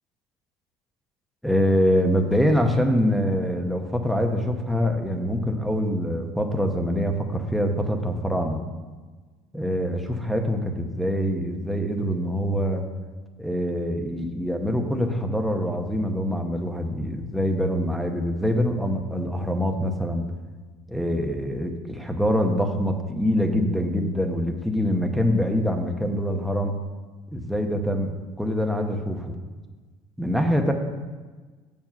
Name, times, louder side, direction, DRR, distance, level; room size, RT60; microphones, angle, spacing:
voice 1, 1.4-8.6 9.5-12.8 13.4-20.3 20.9-26.7 27.3-29.3 30.2-30.7, equal, ahead, 3 dB, 0.9 m, -24 dB
7.4 x 7.2 x 5.8 m, 1.3 s
cardioid pair, 120°, 13 cm